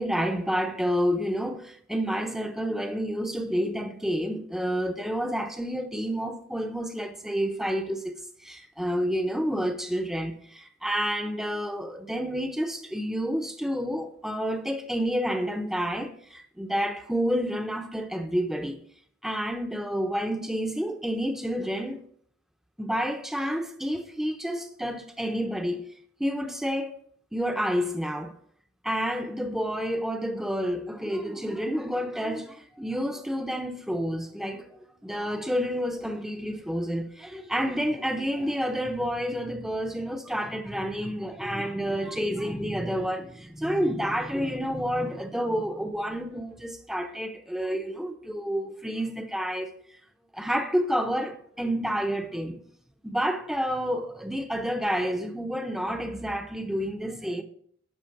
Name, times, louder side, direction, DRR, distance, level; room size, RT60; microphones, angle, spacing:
voice 1, 0.0-8.1 8.4-18.8 19.2-22.0 22.8-25.8 26.2-26.9 27.3-28.3 28.8-49.7 50.3-52.6 53.0-57.4, equal, ahead, 0.6 m, -29 dB
11.5 x 5.9 x 5.8 m
head